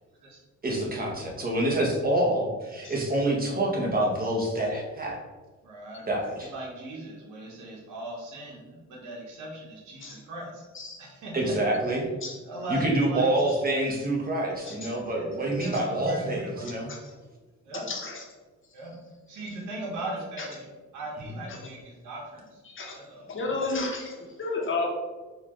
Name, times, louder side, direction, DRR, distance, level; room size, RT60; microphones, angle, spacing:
voice 1, 0.6-5.2 6.1-6.5 11.3-12.0 12.7-16.9, right 1 dB, 30° right, -2 dB, 1.1 m, -27 dB
voice 2, 5.6-6.1 6.5-10.6 11.0-11.6 12.4-13.3 15.1-16.7 17.6-17.9 18.7-19.0 19.3-20.7 20.9-22.6 22.9-23.3, right 1 dB, 75° right, -3 dB, 1.1 m, -38 dB
voice 3, 16.6-17.1 17.9-18.2 20.4-20.5 21.5-21.6 22.7-23.0 23.3-24.9, left 3 dB, 40° left, 0 dB, 1.0 m, -32 dB
4.3 x 2.5 x 3.0 m, 1.3 s
cardioid pair, 90°, 30 cm